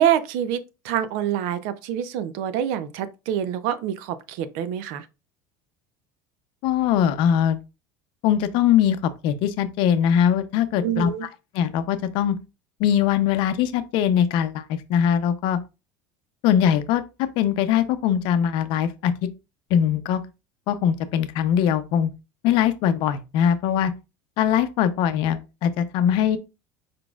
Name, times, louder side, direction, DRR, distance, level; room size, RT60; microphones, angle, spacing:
voice 1, 0.0-5.1 10.8-11.3, right 10 dB, 70° right, 0.5 m, -26 dB
voice 2, 6.6-7.6 8.2-11.1 11.5-12.4 12.8-15.6 16.4-17.0 17.4-19.1 19.7-20.2 20.7-22.1 22.4-23.9 24.4-26.4, left 9 dB, 60° left, 0.6 m, -21 dB
4.7 x 4.0 x 2.3 m
cardioid pair, 145°, 10 cm